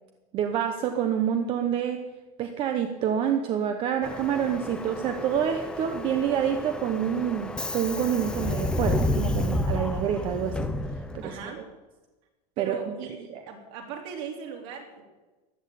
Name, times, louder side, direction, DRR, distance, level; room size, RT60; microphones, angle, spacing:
voice 1, 0.3-2.0 2.4-10.7 11.1-11.3 12.6-12.8 13.3-13.4, right 8 dB, 25° right, 6 dB, 0.8 m, -27 dB
Subway metro underground, 4.0-11.4, left 2 dB, 5° left, 0.6 m, -31 dB
voice 2, 11.2-11.6 12.6-15.0, right 7 dB, 50° right, 2 dB, 3.4 m, -38 dB
14.5 x 10.5 x 8.5 m, 1.2 s
supercardioid pair, 175°, 20 cm